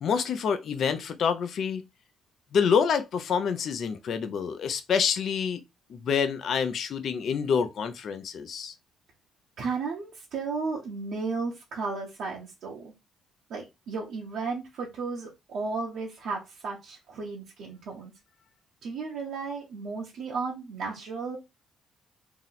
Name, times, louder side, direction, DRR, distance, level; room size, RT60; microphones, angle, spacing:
voice 1, 0.0-1.8 2.5-5.6 5.9-8.7, left 6 dB, 65° left, 0.5 m, -27 dB
voice 2, 9.6-12.9 13.5-18.1 18.8-21.4, right 4 dB, 75° right, 0.8 m, -34 dB
2.8 x 2.0 x 3.9 m
cardioid pair, 90°, 0 cm